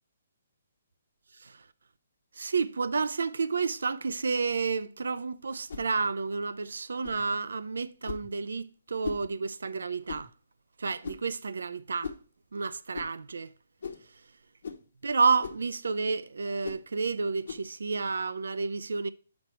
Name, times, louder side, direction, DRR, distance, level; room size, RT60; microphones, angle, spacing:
voice 1, 2.4-10.3 10.8-12.1 12.5-13.5 15.0-19.1, right 4 dB, 85° right, 0.5 m, -30 dB
sound 1, 5.7-5.9 7.0-7.2 8.0-8.3 9.0-9.3 10.1-10.3 11.0-11.3 12.0-12.2 12.9-13.1 13.8-14.1 14.6-14.8 15.4-15.6 16.6-16.8 17.4-17.7, left 5 dB, 70° left, 1.1 m, -38 dB
6.1 x 5.3 x 4.4 m
hypercardioid pair, 160°, 0 cm